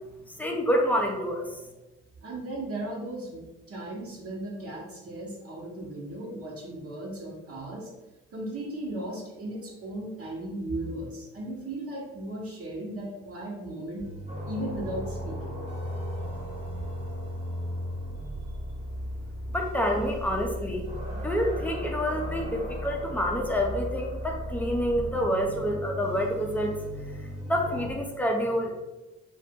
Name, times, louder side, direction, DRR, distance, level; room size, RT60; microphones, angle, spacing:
voice 1, 0.4-1.5 19.5-20.9 21.2-26.7 27.5-28.8, equal, 5° left, 1 dB, 0.7 m, -27 dB
voice 2, 2.2-7.9 8.3-14.0 14.4-15.5 18.4-18.5, right 1 dB, 50° right, -3 dB, 1.2 m, -36 dB
sound 1, 14.0-27.9, equal, 20° right, 1.0 m, -36 dB
2.6 x 2.5 x 3.6 m, 1.1 s
supercardioid pair, 55°, 30 cm